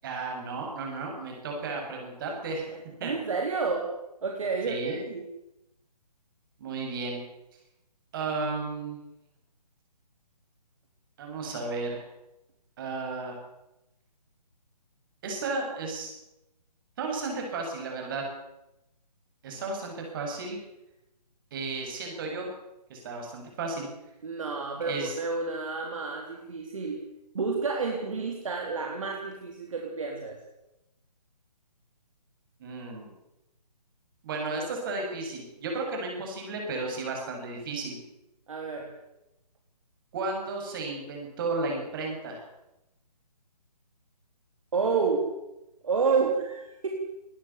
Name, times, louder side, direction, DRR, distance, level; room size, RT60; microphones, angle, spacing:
voice 1, 0.0-2.6 3.0-3.1 4.7-5.0 6.6-7.2 8.1-9.0 11.2-12.0 12.8-13.4 15.2-16.1 17.0-18.2 19.4-20.6 21.5-22.5 22.9-23.9 24.8-25.1 32.6-33.1 34.2-38.0 40.1-42.4, right 3 dB, 30° right, 1 dB, 7.7 m, -33 dB
voice 2, 3.0-3.9 4.2-5.2 24.2-27.0 27.3-30.4 38.5-38.9 44.7-45.3 45.8-46.9, right 4 dB, 50° right, 1 dB, 3.7 m, -29 dB
20.5 x 17.0 x 8.7 m, 0.92 s
figure-of-eight pair, 140°, 21 cm